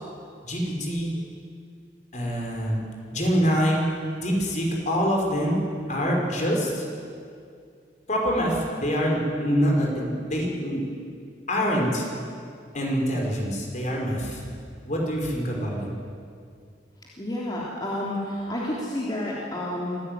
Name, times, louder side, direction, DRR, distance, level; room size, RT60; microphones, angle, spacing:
voice 1, 0.4-1.1 2.1-2.8 3.1-3.8 4.2-5.6 5.9-6.9 8.1-10.8 11.5-12.1 12.7-14.4 14.9-15.9, equal, 45° left, 0 dB, 5.4 m, -25 dB
voice 2, 17.2-20.0, left 1 dB, 25° left, -5 dB, 3.2 m, -30 dB
25.5 x 16.5 x 9.3 m, 2.3 s
head